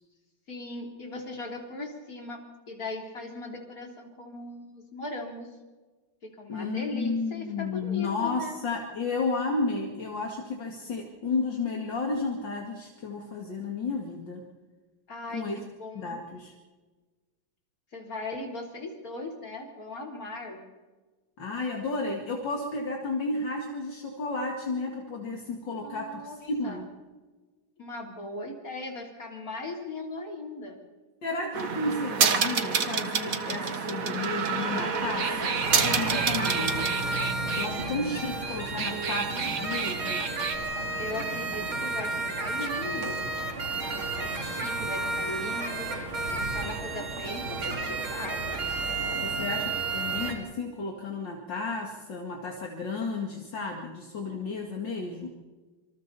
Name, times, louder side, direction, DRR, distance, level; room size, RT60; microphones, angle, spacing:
voice 1, 0.5-2.4 2.7-5.5 6.2-8.6 15.1-16.2 17.9-20.6 25.7-26.4 26.6-26.8 27.8-30.8 38.0-39.5 41.0-43.2 43.9-45.9 46.3-48.6, left 2 dB, 45° left, 0 dB, 4.1 m, -39 dB
voice 2, 6.5-14.4 15.3-15.6 15.9-16.5 21.4-26.9 31.2-36.9 37.5-40.2 49.2-55.3, left 3 dB, 60° left, 0 dB, 2.8 m, -32 dB
sound 1, 31.5-37.7 38.6-40.6, right 5 dB, 45° right, 1.7 m, -28 dB
sound 2, 35.6-50.4, right 3 dB, 85° right, 3.7 m, -32 dB
27.0 x 26.5 x 4.2 m, 1.3 s
omnidirectional pair, 2.2 m